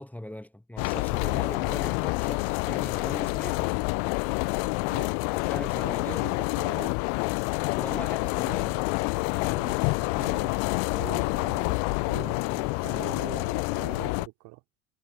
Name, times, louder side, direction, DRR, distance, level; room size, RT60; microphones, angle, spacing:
voice 1, 0.0-3.8 5.5-6.2 7.8-9.0, left 1 dB, 5° left, 1.8 m, -40 dB
sound 1, 0.8-14.3, left 40 dB or more, 55° left, 0.5 m, -28 dB
voice 2, 4.9-6.9 9.3-14.6, right 24 dB, 60° right, 3.3 m, -44 dB
figure-of-eight pair, 65°, 37 cm